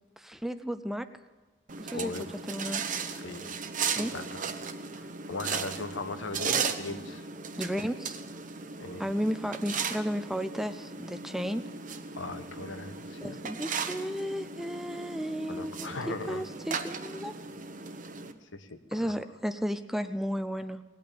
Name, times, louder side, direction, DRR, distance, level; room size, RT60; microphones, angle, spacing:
voice 1, 0.2-1.1 1.8-2.1 2.5-2.9 4.0-4.1 7.6-8.2 9.0-11.6 13.2-17.3 18.9-20.8, equal, ahead, 10 dB, 0.5 m, -33 dB
sound 1, 1.7-18.3, right 5 dB, 45° right, 1.0 m, -36 dB
voice 2, 1.9-2.3 3.1-3.5 4.1-4.4 5.0-7.3 8.8-9.0 12.1-13.4 15.5-16.4 18.5-19.1, left 3 dB, 85° left, 9 dB, 1.2 m, -39 dB
18.5 x 8.6 x 8.7 m, 1.2 s
head